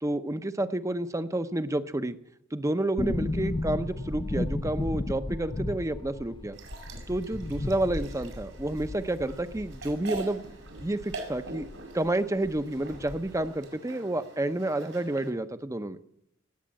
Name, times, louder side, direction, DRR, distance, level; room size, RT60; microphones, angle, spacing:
voice 1, 0.0-2.2 2.5-6.6 7.1-10.4 10.8-11.7 11.9-16.0, right 1 dB, 15° right, 11 dB, 0.7 m, -30 dB
sound 1, 3.0-11.8 12.1-12.2 12.4-13.5 13.7-13.8, left 2 dB, 25° left, 0.5 m, -34 dB
sound 2, 6.5-15.3, right 3 dB, 80° right, 5.0 m, -44 dB
19.0 x 8.1 x 7.5 m, 0.80 s
head